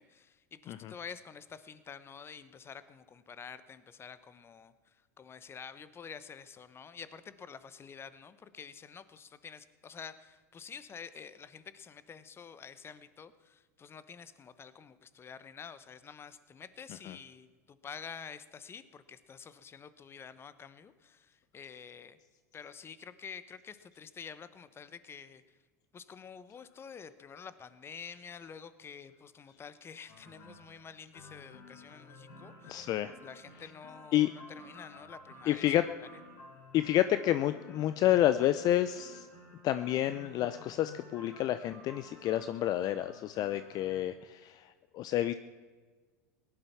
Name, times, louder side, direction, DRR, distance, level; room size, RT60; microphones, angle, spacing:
voice 1, 0.0-22.2 22.5-25.5 25.9-35.8, left 6 dB, 30° left, 14 dB, 1.1 m, -49 dB
sound 1, 30.1-44.0, left 2 dB, 70° left, 6.5 m, -53 dB
voice 2, 32.7-33.1 34.1-34.3 35.5-35.8 36.7-39.3 39.6-45.3, left 13 dB, 45° left, 12 dB, 0.6 m, -29 dB
18.0 x 11.5 x 5.8 m, 1.4 s
hypercardioid pair, 90°, 9 cm